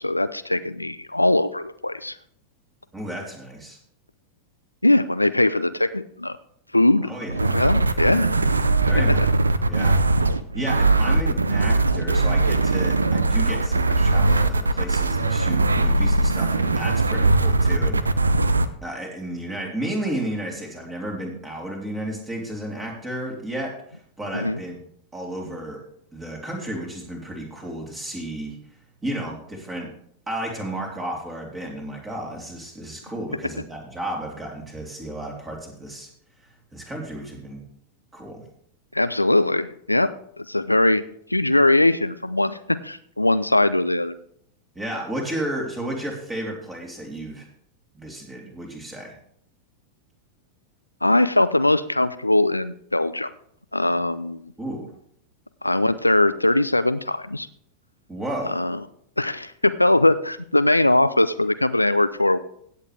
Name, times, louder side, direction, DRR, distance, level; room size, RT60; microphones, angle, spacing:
voice 1, 0.0-2.2 4.8-6.4 6.7-7.1 7.4-8.3 8.9-9.2 24.3-24.6 38.9-40.1 40.4-41.0 41.3-44.2 51.0-53.3 53.7-54.5 55.6-57.5 58.5-58.8 59.2-62.4, left 1 dB, 85° left, 13 dB, 0.5 m, -21 dB
voice 2, 2.9-3.8 7.0-7.6 8.8-9.2 9.6-10.0 10.5-18.4 18.8-25.8 26.1-28.6 29.0-29.9 30.3-36.1 36.7-37.6 38.1-38.4 44.8-47.5 47.9-49.1 54.6-54.9 58.1-58.6, right 1 dB, 15° right, -1 dB, 3.7 m, -33 dB
sound 1, 7.3-18.7, right 2 dB, 80° right, 0.6 m, -20 dB
16.0 x 8.3 x 3.5 m, 0.65 s
figure-of-eight pair, 90°, 0 cm